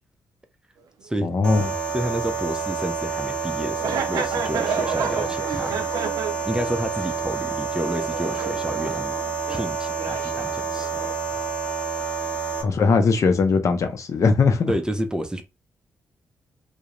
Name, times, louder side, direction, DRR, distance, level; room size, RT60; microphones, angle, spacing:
sound 1, 1.1-1.2 1.7-1.8 2.6-2.8 3.2-3.3 3.7-9.7 10.0-11.1, right 6 dB, 80° right, 0.4 m, -31 dB
voice 1, 1.2-1.7 12.6-14.7, left 4 dB, 55° left, 0.5 m, -20 dB
sound 2, 1.4-12.6, right 5 dB, 15° left, 1.1 m, -28 dB
voice 2, 1.9-5.8 6.5-9.2 9.5-11.0 12.2-12.4 14.7-15.4, right 1 dB, 10° right, 0.4 m, -30 dB
2.3 x 2.0 x 2.9 m
cardioid pair, 80°, 6 cm